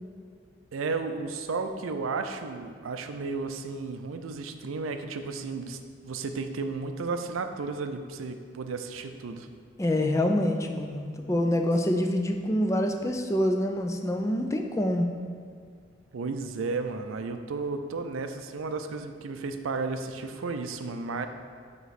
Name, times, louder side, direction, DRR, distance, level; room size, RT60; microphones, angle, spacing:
voice 1, 0.7-9.5 16.1-21.3, right 4 dB, 85° right, 7 dB, 0.4 m, -33 dB
voice 2, 9.8-15.1, left 1 dB, 15° left, 4 dB, 0.3 m, -26 dB
9.0 x 3.0 x 4.1 m, 2.1 s
head